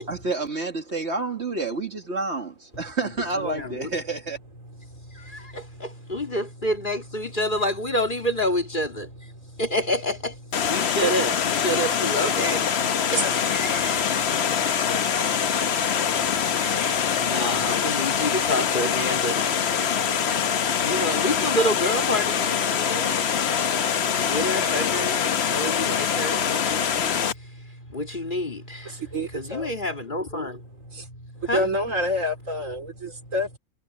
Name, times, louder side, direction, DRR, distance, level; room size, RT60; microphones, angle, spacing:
voice 1, 0.1-4.4, right 3 dB, 50° right, 2.3 m, -29 dB
voice 2, 3.4-3.9 4.9-29.0 29.3-31.6, equal, 35° left, 3.1 m, -30 dB
Water, 10.5-27.3, left 7 dB, 55° left, 1.1 m, -24 dB
voice 3, 28.9-29.7 30.9-31.1 31.4-33.6, equal, 70° right, 4.1 m, -28 dB
omnidirectional pair, 1.4 m